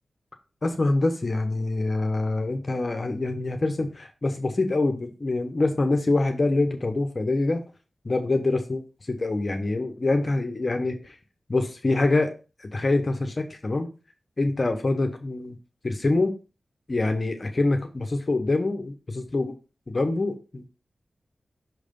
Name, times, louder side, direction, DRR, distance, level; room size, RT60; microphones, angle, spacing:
voice 1, 0.6-7.6 8.0-11.2 11.5-12.3 12.6-13.9 14.4-15.6 15.8-16.4 16.9-19.6 19.9-20.7, left 2 dB, 45° left, 5 dB, 0.9 m, -25 dB
6.0 x 3.3 x 5.1 m, 0.32 s
wide cardioid pair, 65°, 0 cm